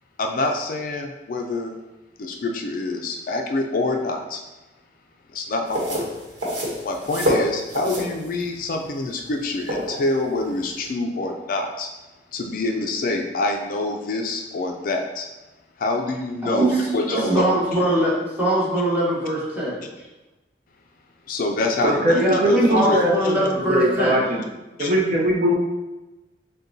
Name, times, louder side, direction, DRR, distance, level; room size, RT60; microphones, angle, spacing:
voice 1, 0.2-1.8 2.2-4.4 5.3-6.0 6.8-11.9 12.3-15.3 15.8-17.5 21.3-23.4 24.8-24.9, left 2 dB, 50° left, 3 dB, 0.3 m, -26 dB
sound 1, 5.7-10.9, equal, 90° right, 1.0 m, -27 dB
voice 2, 16.4-19.8 22.1-22.4 22.7-24.2, right 1 dB, 10° right, -8 dB, 1.2 m, -22 dB
voice 3, 21.8-24.5 24.8-25.5, equal, 45° right, -2 dB, 0.6 m, -20 dB
6.5 x 2.2 x 2.7 m, 1.1 s
head